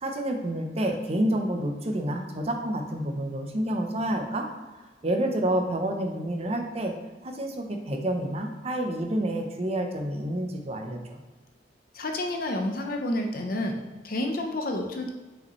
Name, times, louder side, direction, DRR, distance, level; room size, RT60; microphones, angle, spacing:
voice 1, 0.0-4.5 5.0-6.9 7.2-11.2, right 1 dB, 35° right, 3 dB, 0.7 m, -29 dB
voice 2, 11.9-13.8 14.0-15.1, left 1 dB, 55° left, 3 dB, 0.8 m, -29 dB
6.4 x 5.1 x 3.1 m, 1.3 s
head